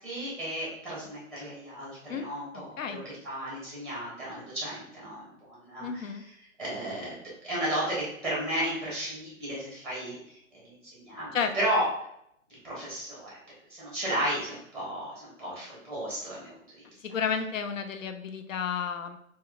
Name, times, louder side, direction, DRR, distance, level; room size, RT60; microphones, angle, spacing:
voice 1, 0.0-6.1 6.6-7.2 7.4-11.9 12.6-13.4 13.7-16.8, right 1 dB, 5° left, -6 dB, 0.8 m, -34 dB
voice 2, 5.8-6.2 11.3-11.5 17.0-19.2, left 6 dB, 65° left, 7 dB, 0.5 m, -31 dB
4.4 x 2.2 x 2.3 m, 0.75 s
hypercardioid pair, 145°, 42 cm